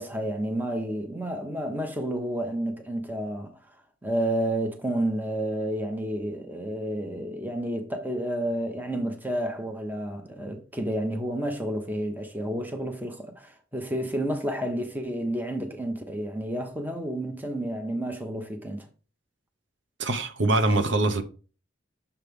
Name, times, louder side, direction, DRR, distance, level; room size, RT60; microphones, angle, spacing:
voice 1, 0.0-3.5 4.0-18.9, right 1 dB, 10° right, 0.8 m, -30 dB
voice 2, 20.0-21.2, right 2 dB, 70° right, 0.8 m, -23 dB
6.9 x 3.2 x 5.2 m
head